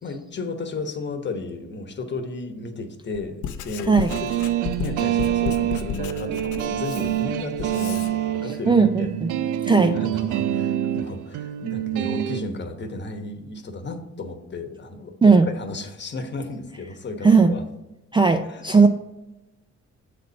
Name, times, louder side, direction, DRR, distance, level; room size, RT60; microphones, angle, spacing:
voice 1, 0.0-4.3 4.8-9.1 9.9-17.6 18.5-18.9, left 2 dB, 35° left, 6 dB, 1.1 m, -34 dB
Writing, 3.1-8.1, left 9 dB, 80° left, 0.6 m, -33 dB
sound 1, 4.1-12.4, right 12 dB, 90° right, 0.5 m, -26 dB
voice 2, 8.4-9.3 9.6-10.0 15.2-15.5 17.2-17.5 18.1-18.9, right 4 dB, 15° right, 7 dB, 0.4 m, -17 dB
7.7 x 4.2 x 5.2 m, 1.0 s
cardioid pair, 90°, 30 cm